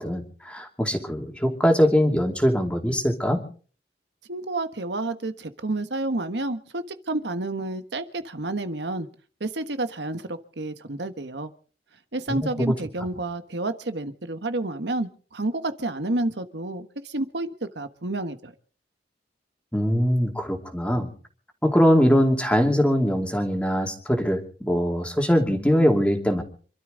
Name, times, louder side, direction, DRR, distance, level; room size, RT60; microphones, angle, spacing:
voice 1, 0.0-3.4 12.3-12.7 19.7-21.1 21.6-26.4, equal, 5° left, 3 dB, 2.7 m, -22 dB
voice 2, 4.3-9.1 9.4-11.5 12.1-18.5, right 2 dB, 80° right, 10 dB, 1.4 m, -30 dB
27.0 x 12.5 x 4.0 m, 0.42 s
head